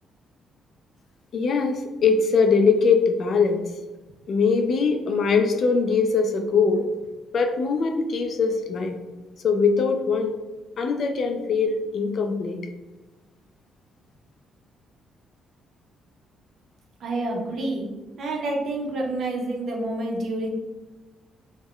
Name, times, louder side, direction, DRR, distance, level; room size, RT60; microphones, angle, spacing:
voice 1, 1.3-3.6 4.3-6.9 7.3-9.0 9.4-10.3 10.8-12.6, left 5 dB, 45° left, 5 dB, 0.3 m, -22 dB
voice 2, 17.0-17.9 18.2-20.5, right 2 dB, 50° right, 0 dB, 0.5 m, -28 dB
2.2 x 2.1 x 3.5 m, 1.1 s
cardioid pair, 155°, 0 cm